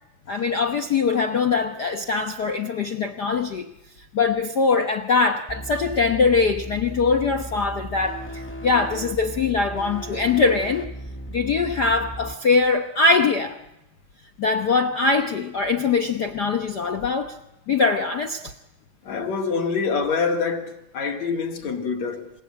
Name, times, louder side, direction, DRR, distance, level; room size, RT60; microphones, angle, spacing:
voice 1, 0.3-3.7 4.1-10.9 11.3-13.6 14.4-17.3 17.7-18.5, left 4 dB, 80° left, 0.9 m, -22 dB
sound 1, 5.5-12.3, right 1 dB, 10° left, 0.7 m, -36 dB
voice 2, 19.0-22.3, left 5 dB, 60° left, 3.5 m, -26 dB
27.5 x 18.5 x 8.8 m
omnidirectional pair, 3.6 m